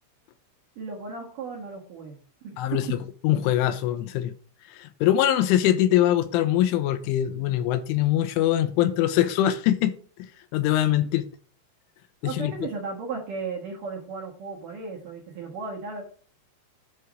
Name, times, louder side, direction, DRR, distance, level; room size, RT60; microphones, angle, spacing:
voice 1, 0.8-2.2 2.4-3.0 12.2-16.0, right 4 dB, 60° right, 2.4 m, -35 dB
voice 2, 2.6-4.3 4.7-9.9 10.2-11.3 12.2-12.5, left 12 dB, 85° left, 3.2 m, -23 dB
9.9 x 4.6 x 6.2 m
omnidirectional pair, 5.7 m